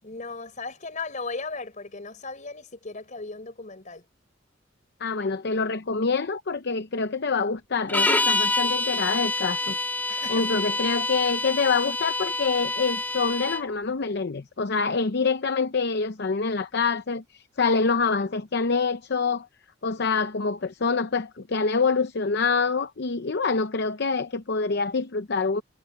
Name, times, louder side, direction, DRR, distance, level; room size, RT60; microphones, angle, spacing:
voice 1, 0.0-4.0 10.1-10.7, left 3 dB, 40° left, 4.6 m, -36 dB
voice 2, 5.0-9.8 10.3-19.5 19.8-25.6, left 4 dB, 60° left, 0.7 m, -26 dB
sound 1, 7.9-13.7, left 2 dB, 10° left, 2.1 m, -27 dB
head